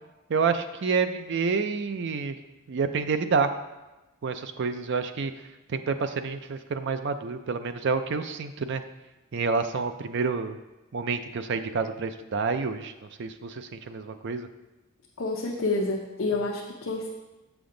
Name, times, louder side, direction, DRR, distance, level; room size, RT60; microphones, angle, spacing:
voice 1, 0.3-2.4 2.7-3.5 4.2-5.3 5.7-8.8 9.3-10.6 10.9-12.9 13.2-14.5, right 5 dB, 50° right, 9 dB, 0.4 m, -28 dB
voice 2, 15.2-17.1, left 2 dB, 55° left, -2 dB, 0.7 m, -28 dB
7.0 x 6.0 x 3.8 m, 1.1 s
head